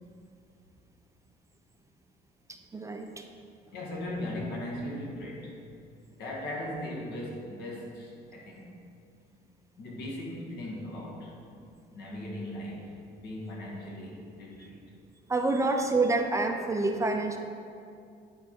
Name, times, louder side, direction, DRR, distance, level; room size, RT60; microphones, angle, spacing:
voice 1, 2.5-3.3 15.3-17.4, right 3 dB, 20° right, 4 dB, 0.5 m, -28 dB
voice 2, 3.7-5.5 6.2-8.8 9.8-11.3 11.9-14.8, left 1 dB, 75° left, -3 dB, 1.6 m, -38 dB
10.0 x 3.4 x 4.3 m, 2.4 s
cardioid pair, 110°, 17 cm